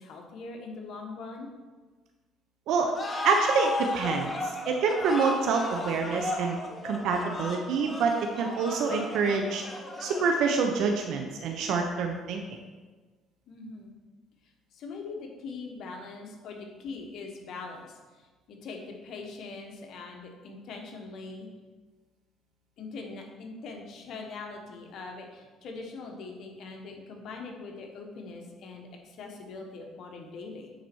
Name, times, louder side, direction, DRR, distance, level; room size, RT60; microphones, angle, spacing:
voice 1, 0.0-1.5 13.5-13.9 14.7-21.5 22.8-30.7, left 3 dB, 65° left, 2 dB, 1.3 m, -42 dB
sound 1, 2.9-10.8, left 2 dB, 25° left, 1.1 m, -35 dB
voice 2, 3.2-4.3 4.7-6.6 6.8-9.6 10.0-12.4, right 5 dB, 70° right, 3 dB, 0.7 m, -26 dB
9.3 x 4.2 x 4.6 m, 1.3 s
cardioid pair, 95°, 0 cm